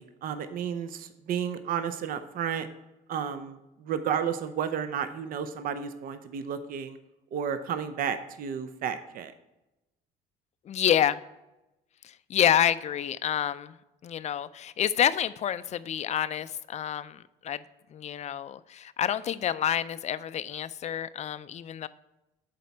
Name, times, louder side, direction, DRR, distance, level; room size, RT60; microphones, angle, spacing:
voice 1, 0.0-2.7 3.1-7.0 7.3-9.3, right 8 dB, 60° right, 10 dB, 0.6 m, -32 dB
voice 2, 10.7-11.2 12.0-13.7 14.0-17.6 17.9-21.9, left 10 dB, 40° left, 15 dB, 0.4 m, -28 dB
7.6 x 4.2 x 5.8 m, 0.95 s
cardioid pair, 110°, 17 cm